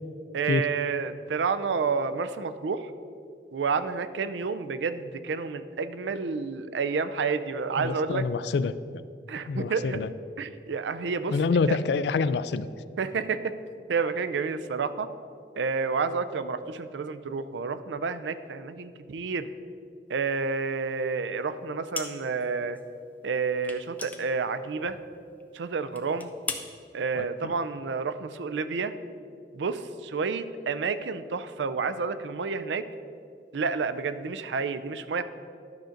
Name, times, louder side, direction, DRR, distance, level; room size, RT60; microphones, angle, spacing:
voice 1, 0.3-2.9 3.5-8.3 9.3-10.0 10.4-11.4 11.7-11.8 13.0-13.5 13.9-15.1 15.6-19.5 20.1-22.8 23.2-25.0 25.5-26.3 26.9-28.9 29.5-32.8 33.5-35.2, right 5 dB, 90° right, 12 dB, 0.4 m, -30 dB
voice 2, 7.8-8.7 9.5-10.1 11.3-12.7 27.1-27.5, left 4 dB, 75° left, 14 dB, 0.3 m, -27 dB
sound 1, 21.9-22.5 22.7-22.9 23.6-25.1 25.4-25.5 25.9-26.7, left 3 dB, 10° left, 0.5 m, -37 dB
11.5 x 3.9 x 6.4 m, 2.4 s
head